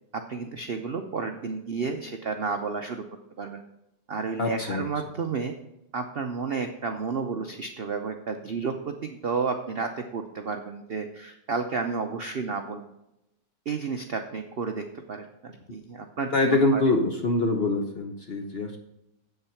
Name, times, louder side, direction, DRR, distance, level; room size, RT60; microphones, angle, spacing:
voice 1, 0.1-3.0 3.4-3.6 4.1-5.5 5.9-12.8 13.7-16.8, right 5 dB, 60° right, 5 dB, 0.6 m, -31 dB
voice 2, 4.4-4.9 16.3-18.8, left 2 dB, 50° left, 3 dB, 0.8 m, -24 dB
8.0 x 7.2 x 5.7 m, 0.87 s
omnidirectional pair, 1.9 m